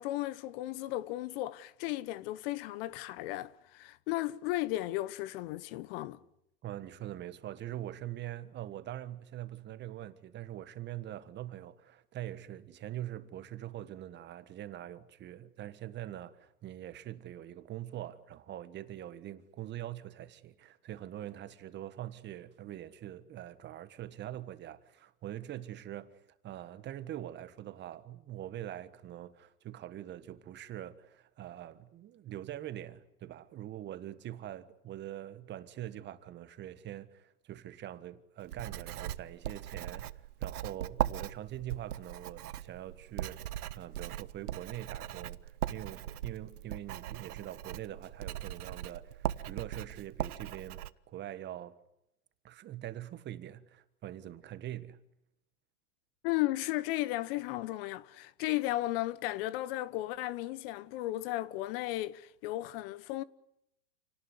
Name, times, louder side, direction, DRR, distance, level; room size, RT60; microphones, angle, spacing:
voice 1, 0.0-6.2 56.2-63.2, left 16 dB, 40° left, 0.9 m, -35 dB
voice 2, 6.6-43.4 43.7-51.8 52.4-55.0, right 12 dB, 25° right, 1.5 m, -43 dB
Writing, 38.5-50.9, right 12 dB, 75° right, 1.3 m, -39 dB
29.0 x 18.5 x 9.6 m
hypercardioid pair, 135°, 46 cm